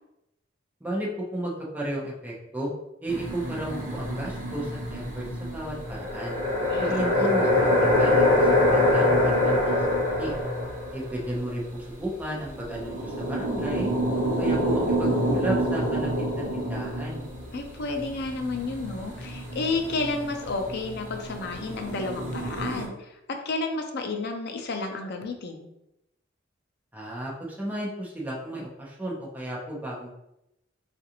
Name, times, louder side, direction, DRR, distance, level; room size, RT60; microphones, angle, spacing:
voice 1, 0.8-2.7 3.0-6.4 6.8-7.7 8.0-10.3 10.9-13.9 14.4-17.3 26.9-30.1, right 1 dB, 10° right, -5 dB, 0.7 m, -33 dB
sound 1, 3.1-11.4 12.2-12.3 12.5-22.9, left 1 dB, 45° right, 1.0 m, -26 dB
voice 2, 17.5-23.1 23.5-25.7, left 3 dB, 60° left, 4 dB, 0.5 m, -31 dB
3.9 x 2.5 x 2.9 m, 0.86 s
head